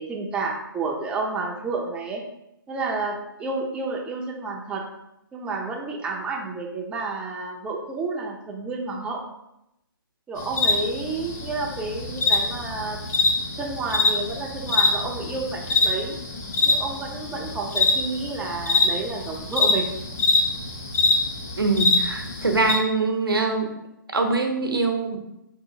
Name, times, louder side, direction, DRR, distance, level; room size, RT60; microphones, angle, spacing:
voice 1, 0.0-2.2 2.7-4.8 5.3-9.2 10.3-13.0 13.6-16.2 16.7-19.9, right 3 dB, 10° right, 1 dB, 0.4 m, -30 dB
sound 1, 10.4-22.8, left 3 dB, 45° left, 1.2 m, -24 dB
voice 2, 21.6-23.7 24.1-25.2, right 3 dB, 85° right, 4 dB, 0.7 m, -23 dB
4.6 x 2.9 x 2.6 m, 0.85 s
figure-of-eight pair, 140°, 12 cm